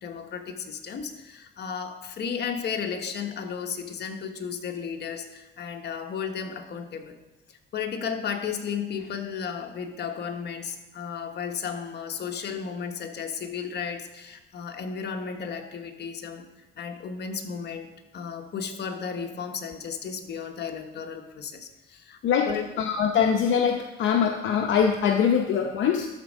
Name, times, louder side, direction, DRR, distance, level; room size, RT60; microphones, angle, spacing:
voice 1, 0.0-7.2 7.5-16.5 16.8-17.9 18.1-22.2 22.5-22.6, left 6 dB, 60° left, 4 dB, 1.2 m, -34 dB
voice 2, 22.8-26.1, left 7 dB, 75° left, 3 dB, 0.8 m, -23 dB
12.5 x 4.5 x 6.4 m, 1.1 s
cardioid pair, 90°, 20 cm